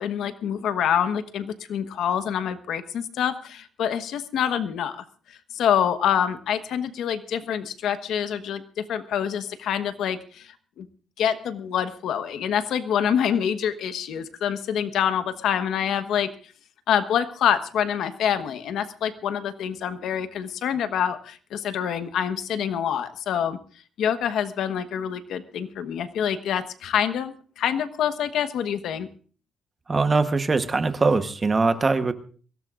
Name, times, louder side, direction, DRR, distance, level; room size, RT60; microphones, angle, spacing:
voice 1, 0.0-5.0 5.5-10.5 10.8-10.9 11.2-16.3 16.9-23.6 24.0-29.1, left 9 dB, 70° left, 10 dB, 1.2 m, -26 dB
voice 2, 29.9-32.1, right 3 dB, 25° right, 10 dB, 1.0 m, -22 dB
23.0 x 17.0 x 2.5 m, 0.40 s
cardioid pair, 145°, 0 cm